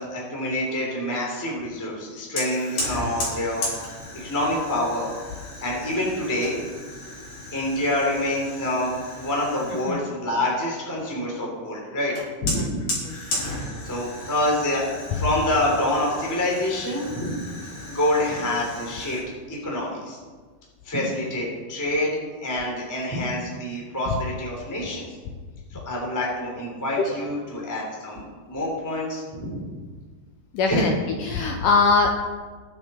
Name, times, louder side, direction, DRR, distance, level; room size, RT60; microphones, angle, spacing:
voice 1, 0.0-3.7 4.1-5.1 5.6-6.5 7.5-12.1 12.4-12.8 13.5-17.4 17.9-19.2 19.5-20.2 20.8-25.1 25.7-29.6 30.7-30.9, left 1 dB, 5° left, -3 dB, 2.1 m, -27 dB
Fire, 2.4-10.0 12.2-19.2, left 1 dB, 50° left, 4.7 m, -35 dB
voice 2, 30.5-30.9 31.2-32.1, left 4 dB, 80° left, 3 dB, 1.9 m, -21 dB
20.5 x 7.2 x 4.3 m, 1.4 s
omnidirectional pair, 4.7 m